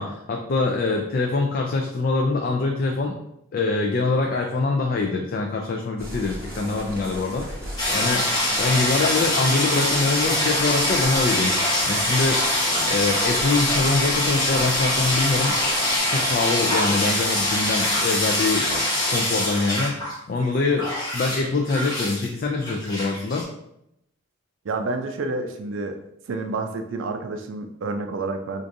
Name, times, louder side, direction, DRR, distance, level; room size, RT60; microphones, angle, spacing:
voice 1, 0.0-3.1 3.5-7.5 7.9-8.3 8.6-11.5 11.9-12.4 12.9-15.6 16.1-23.4, left 3 dB, 45° left, 1 dB, 0.3 m, -24 dB
sound 1, 6.0-16.0, equal, 10° right, 0.9 m, -37 dB
sound 2, 7.8-20.1 20.4-22.3 22.6-23.4, left 1 dB, 20° left, 0.9 m, -23 dB
voice 2, 24.6-26.0 26.3-28.6, right 3 dB, 65° right, 6 dB, 0.4 m, -29 dB
4.6 x 2.5 x 2.6 m, 0.79 s
head